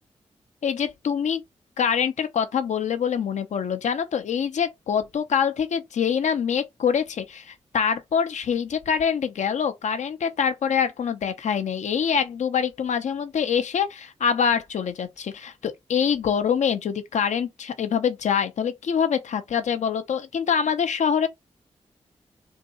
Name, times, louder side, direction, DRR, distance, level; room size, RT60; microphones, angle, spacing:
voice 1, 0.6-1.4 1.8-21.3, left 7 dB, 80° left, 0.6 m, -25 dB
2.8 x 2.7 x 4.1 m
cardioid pair, 45°, 12 cm